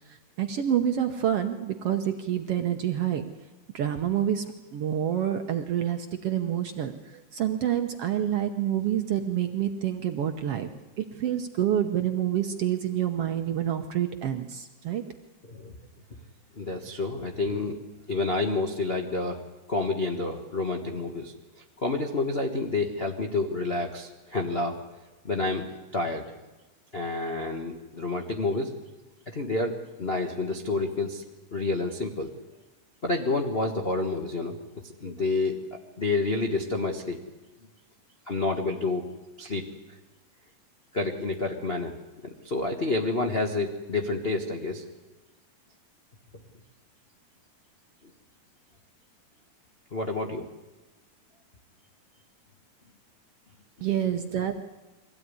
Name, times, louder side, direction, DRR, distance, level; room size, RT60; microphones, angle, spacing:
voice 1, 0.1-3.2 3.7-10.7 11.0-15.0 53.8-54.6, right 10 dB, 65° right, 6 dB, 1.5 m, -28 dB
voice 2, 16.6-17.8 18.1-19.4 19.7-21.3 21.8-24.8 25.2-25.7 25.9-26.3 26.9-28.7 29.3-31.2 31.5-32.3 33.0-34.6 35.0-37.2 38.3-39.0 39.4-39.6 40.9-41.9 42.2-44.8 49.9-50.4, left 3 dB, 50° left, 1 dB, 0.7 m, -29 dB
23.0 x 16.5 x 9.7 m, 1.2 s
omnidirectional pair, 3.7 m